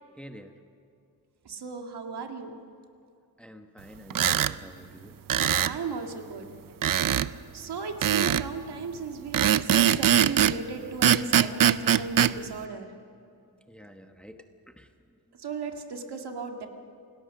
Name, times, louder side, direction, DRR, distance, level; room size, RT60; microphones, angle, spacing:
voice 1, 0.2-0.5 3.4-5.2 13.7-14.4 14.7-14.9, equal, 5° left, 5 dB, 1.1 m, -48 dB
voice 2, 1.4-2.6 5.6-6.5 7.5-12.9 15.4-16.7, right 5 dB, 80° right, 3 dB, 2.1 m, -36 dB
sound 1, 4.1-4.5 5.3-5.8 6.8-7.3 8.0-8.5 9.3-10.6 11.0-12.3, right 10 dB, 60° right, 0.6 m, -22 dB
28.0 x 18.5 x 6.6 m, 2.5 s
wide cardioid pair, 155°, 39 cm